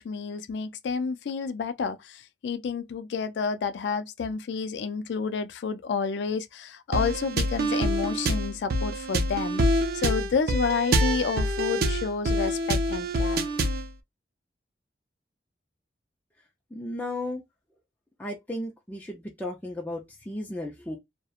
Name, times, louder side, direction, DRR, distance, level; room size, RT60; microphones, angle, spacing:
voice 1, 0.0-13.4, left 5 dB, 70° left, 0.4 m, -30 dB
sound 1, 6.9-13.9, right 1 dB, 55° right, 0.4 m, -26 dB
voice 2, 16.7-17.4 18.2-21.0, left 1 dB, 10° left, 0.4 m, -34 dB
2.8 x 2.1 x 2.3 m
head